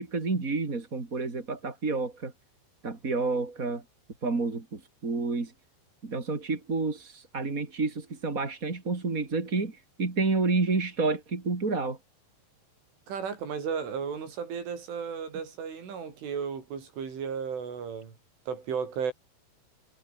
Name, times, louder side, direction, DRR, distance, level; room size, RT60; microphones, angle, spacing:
voice 1, 0.0-2.3 2.8-3.8 4.2-5.5 6.0-12.0, right 3 dB, 20° right, 2.4 m, -29 dB
voice 2, 13.1-18.1 18.5-19.1, right 6 dB, 75° right, 7.9 m, -34 dB
omnidirectional pair, 5.7 m